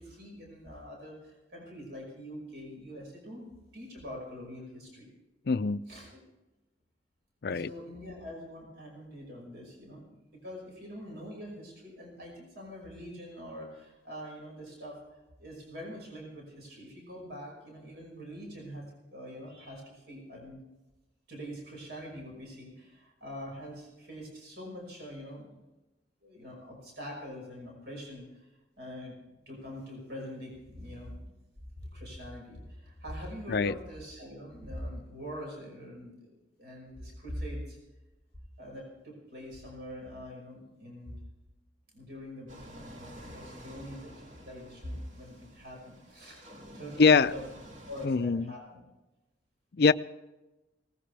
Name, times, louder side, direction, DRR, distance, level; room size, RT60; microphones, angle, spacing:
voice 1, 0.0-3.5 3.7-5.1 5.9-6.2 7.5-18.8 19.1-20.6 21.3-25.5 26.2-28.5 28.8-29.2 29.5-31.3 31.9-37.8 38.6-41.2 41.9-46.4 46.7-47.4 47.9-48.8, equal, 65° right, -1 dB, 5.7 m, -44 dB
voice 2, 5.5-5.8 7.4-7.7 33.5-33.7 47.0-47.3 48.0-48.5 49.7-49.9, left 4 dB, 60° left, 15 dB, 0.5 m, -23 dB
sound 1, 42.5-48.1, equal, 40° right, 2.1 m, -50 dB
20.5 x 19.0 x 3.4 m, 1.0 s
head